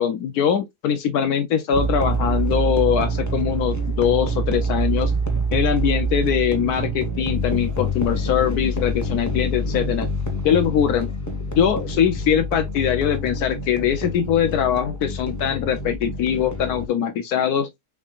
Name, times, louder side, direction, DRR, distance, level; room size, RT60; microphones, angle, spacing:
voice 1, 0.0-5.1 5.5-10.1 10.4-11.1 11.6-17.7, left 8 dB, 75° left, 1.1 m, -22 dB
sound 1, 1.7-16.9, right 1 dB, 15° left, 0.9 m, -26 dB
6.2 x 3.6 x 2.4 m
omnidirectional pair, 1.7 m